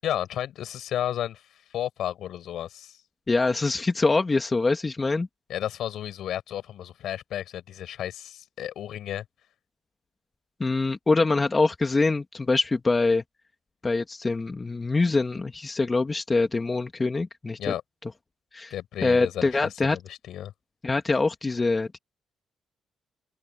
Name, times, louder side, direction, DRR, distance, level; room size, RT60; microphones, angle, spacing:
voice 1, 0.0-1.4 1.7-3.0 5.5-9.2 17.6-17.8 18.7-19.6 19.9-20.5, left 11 dB, 75° left, 7.5 m, -32 dB
voice 2, 3.3-5.3 10.6-13.2 13.8-17.7 18.5-18.7 19.0-20.0 20.8-22.0, left 3 dB, 25° left, 2.2 m, -24 dB
open air
cardioid pair, 90°, 0 cm